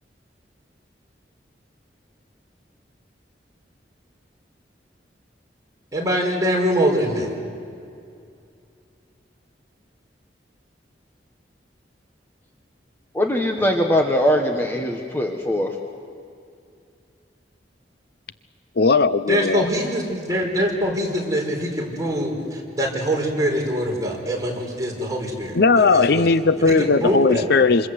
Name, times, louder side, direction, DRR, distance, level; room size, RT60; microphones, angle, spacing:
voice 1, 5.9-7.3 19.3-26.3 26.7-27.4, equal, 20° right, -1 dB, 5.4 m, -24 dB
voice 2, 13.1-15.8, equal, 15° left, 2 dB, 1.5 m, -21 dB
voice 3, 18.8-19.7 25.6-27.9, left 4 dB, 60° left, 13 dB, 0.7 m, -17 dB
27.5 x 27.5 x 7.9 m, 2.4 s
head